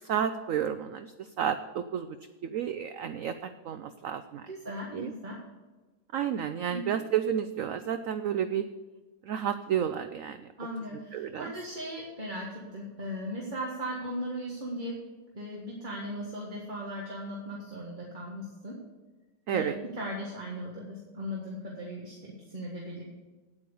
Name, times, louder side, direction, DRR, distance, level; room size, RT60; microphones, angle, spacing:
voice 1, 0.1-2.2 2.4-4.5 4.9-5.1 6.1-8.6 9.2-10.4 11.1-11.5 19.5-19.8, right 9 dB, 85° right, 10 dB, 0.7 m, -31 dB
voice 2, 4.5-5.4 6.7-6.8 10.6-15.0 15.3-18.8 19.5-19.7 19.9-23.0, equal, 25° right, -3 dB, 1.6 m, -38 dB
9.4 x 8.4 x 6.9 m, 1.2 s
omnidirectional pair, 2.0 m